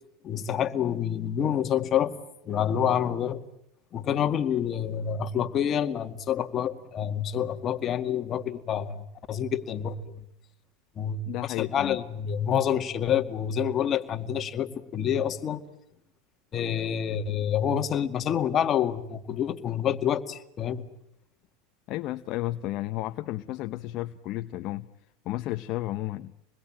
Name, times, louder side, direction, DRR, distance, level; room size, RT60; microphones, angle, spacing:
voice 1, 0.2-2.2 2.5-3.4 3.9-10.2 11.0-11.2 11.6-15.6 16.5-20.9, left 9 dB, 35° left, 8 dB, 2.0 m, -27 dB
voice 2, 11.3-12.0 21.9-24.9 25.2-26.3, left 16 dB, 50° left, 9 dB, 0.9 m, -32 dB
27.0 x 21.0 x 8.8 m, 0.76 s
hypercardioid pair, 105°, 0 cm